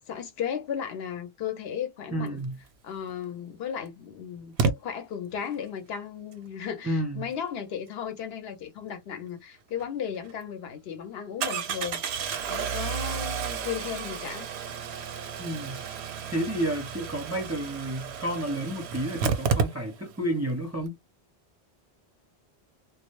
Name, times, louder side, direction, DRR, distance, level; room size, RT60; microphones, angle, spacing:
voice 1, 0.1-2.4 2.8-12.0 12.4-14.5, left 8 dB, 70° left, 0.9 m, -35 dB
voice 2, 2.1-2.6 6.8-7.3 15.4-15.8 16.3-21.0, right 1 dB, 20° right, 0.4 m, -31 dB
Engine starting, 3.1-3.2 4.6-4.7 9.8-9.9 10.2-10.3 11.4-20.2 20.5-20.6 20.8-20.9, right 6 dB, 85° right, 0.9 m, -31 dB
2.1 x 2.0 x 2.9 m
omnidirectional pair, 1.1 m